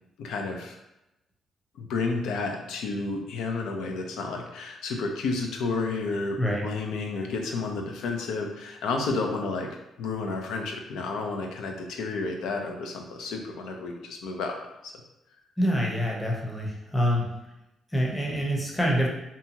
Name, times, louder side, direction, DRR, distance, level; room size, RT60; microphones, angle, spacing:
voice 1, 0.2-0.8 1.8-9.7 10.0-14.6 14.8-14.9, left 3 dB, 85° left, 3 dB, 0.4 m, -31 dB
voice 2, 15.6-17.3 17.9-19.1, equal, 10° left, -2 dB, 0.7 m, -26 dB
2.7 x 2.3 x 2.8 m, 0.91 s
cardioid pair, 90°, 0 cm